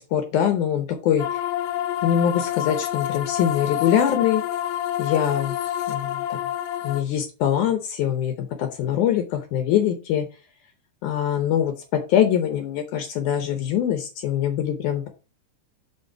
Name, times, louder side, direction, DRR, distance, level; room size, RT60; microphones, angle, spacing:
voice 1, 0.0-1.4 2.0-4.4 5.0-5.6 5.9-6.4 6.8-10.3 11.0-15.1, left 9 dB, 70° left, 6 dB, 2.0 m, -23 dB
sound 1, 1.2-7.0, left 12 dB, 90° left, 2.4 m, -28 dB
5.9 x 5.2 x 4.6 m, 0.33 s
omnidirectional pair, 4.1 m